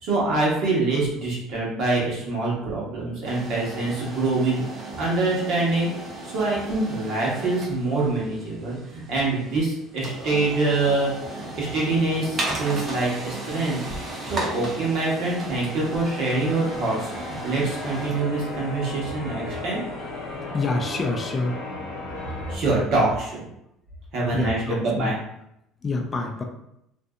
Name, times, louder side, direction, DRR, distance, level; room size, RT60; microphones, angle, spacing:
voice 1, 0.0-4.6 5.0-5.9 6.2-13.8 14.2-19.8 22.5-23.4 24.1-25.1, right 2 dB, 55° right, -4 dB, 1.0 m, -25 dB
sound 1, 3.2-20.1, right 2 dB, 35° right, 0.6 m, -36 dB
Church bell, 15.2-22.6, left 2 dB, 90° left, 0.7 m, -36 dB
voice 2, 20.5-21.6 24.3-25.1 25.8-26.4, left 3 dB, 20° left, 3 dB, 0.4 m, -27 dB
2.6 x 2.5 x 2.3 m, 0.80 s
cardioid pair, 150°, 0 cm